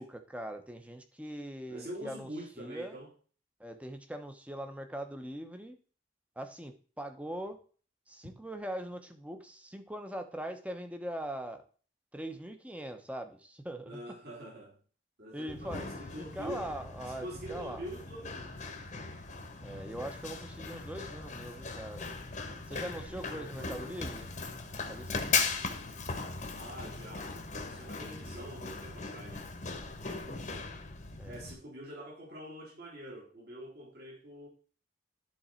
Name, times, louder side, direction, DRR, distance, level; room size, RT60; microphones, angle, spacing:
voice 1, 0.0-2.3 2.6-3.0 3.6-5.8 6.4-7.6 8.1-11.6 12.1-14.0 15.3-17.8 19.6-22.1 22.7-24.3 24.9-25.4 31.2-31.4, right 1 dB, 5° right, 0.8 m, -41 dB
voice 2, 1.7-3.1 13.8-14.8 15.2-16.7 17.1-18.5 23.3-23.8 26.5-29.5 31.2-34.5, right 1 dB, 55° right, 2.7 m, -45 dB
Run, 15.5-31.5, left 4 dB, 40° left, 1.1 m, -38 dB
11.5 x 4.0 x 4.4 m
head